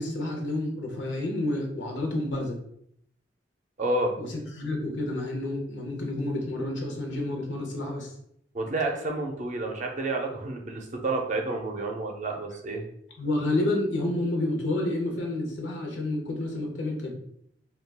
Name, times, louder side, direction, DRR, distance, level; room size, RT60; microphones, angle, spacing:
voice 1, 0.0-2.6 4.2-8.1 13.2-17.1, left 1 dB, 85° left, 1 dB, 0.7 m, -29 dB
voice 2, 3.8-4.1 8.5-12.8, right 2 dB, 40° right, 2 dB, 0.5 m, -29 dB
2.3 x 2.3 x 3.3 m, 0.70 s
head